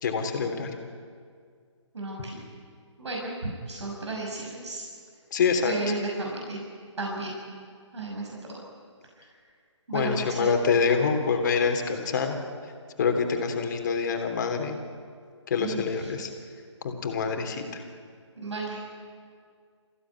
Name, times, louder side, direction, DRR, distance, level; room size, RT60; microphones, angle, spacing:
voice 1, 0.0-0.7 2.2-2.3 5.3-5.7 9.9-12.4 13.0-14.8 15.5-16.3 16.8-17.8, left 5 dB, 40° left, 4 dB, 3.2 m, -26 dB
voice 2, 1.9-2.4 3.0-4.8 5.6-6.6 7.0-7.3 7.9-8.6 9.2-9.3 9.9-10.5 15.6-16.1 18.4-18.8, right 2 dB, 65° right, -1 dB, 5.6 m, -33 dB
27.5 x 16.0 x 9.5 m, 2.1 s
figure-of-eight pair, 145°, 16 cm